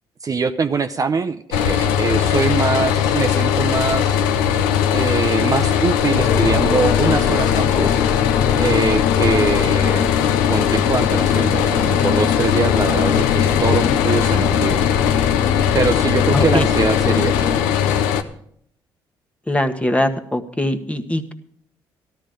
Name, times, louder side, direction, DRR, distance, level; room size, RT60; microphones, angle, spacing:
voice 1, 0.2-4.4 4.9-8.0 8.6-10.1 10.5-14.8 15.7-17.4, right 5 dB, 35° right, 9 dB, 0.6 m, -23 dB
sound 1, 1.5-18.2, left 9 dB, 90° left, 0.6 m, -19 dB
sound 2, 6.2-17.6, left 7 dB, 55° left, 0.7 m, -24 dB
voice 2, 16.3-16.7 19.5-21.3, left 1 dB, 15° left, 7 dB, 1.3 m, -21 dB
13.5 x 11.5 x 5.2 m, 0.68 s
hypercardioid pair, 55°, 10 cm